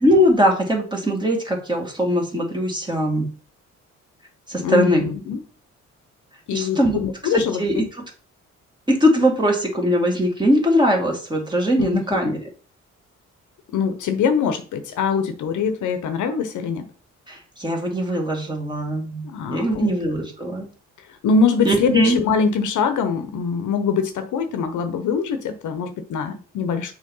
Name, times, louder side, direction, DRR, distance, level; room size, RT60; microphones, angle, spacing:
voice 1, 0.0-3.3 4.5-5.1 6.5-7.9 8.9-12.4 17.3-20.7 21.6-22.2, equal, 15° right, 2.2 m, -21 dB
voice 2, 4.5-5.4 6.5-7.8 11.8-12.3 13.7-16.9 19.2-19.9 21.2-26.9, left 5 dB, 75° left, 0.9 m, -23 dB
6.5 x 3.2 x 5.4 m
cardioid pair, 90°, 30 cm